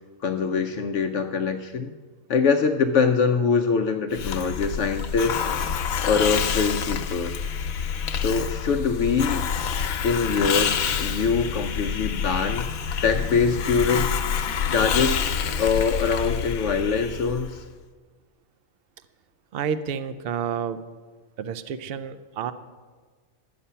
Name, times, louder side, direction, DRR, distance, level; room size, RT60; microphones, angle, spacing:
voice 1, 0.2-1.9 2.3-5.4 6.0-7.3 8.1-9.5 10.0-12.7 13.0-17.6, left 5 dB, 65° left, 4 dB, 0.8 m, -24 dB
Hiss, 4.1-17.6, left 7 dB, 85° left, 1.1 m, -27 dB
sound 1, 4.6-15.9, left 1 dB, 35° right, 3.3 m, -45 dB
voice 2, 19.5-20.8 21.4-22.5, right 7 dB, 60° right, 12 dB, 0.7 m, -30 dB
12.0 x 8.6 x 5.6 m, 1.4 s
omnidirectional pair, 1.4 m